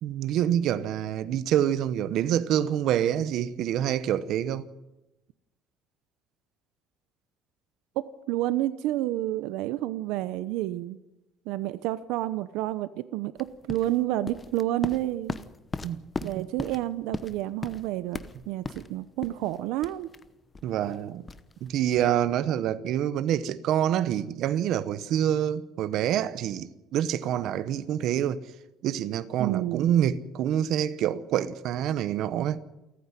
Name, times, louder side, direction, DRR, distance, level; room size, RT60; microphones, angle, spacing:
voice 1, 0.0-4.7 15.8-16.5 20.6-21.2 21.6-28.4 28.8-32.6, right 10 dB, 60° right, 1.0 m, -27 dB
voice 2, 8.3-11.0 11.5-15.4 16.2-18.2 18.5-20.1 29.4-29.9, right 15 dB, 85° right, 0.8 m, -29 dB
sound 1, 13.4-22.2, left 4 dB, 20° left, 0.9 m, -39 dB
28.5 x 9.6 x 9.9 m
cardioid pair, 155°, 0 cm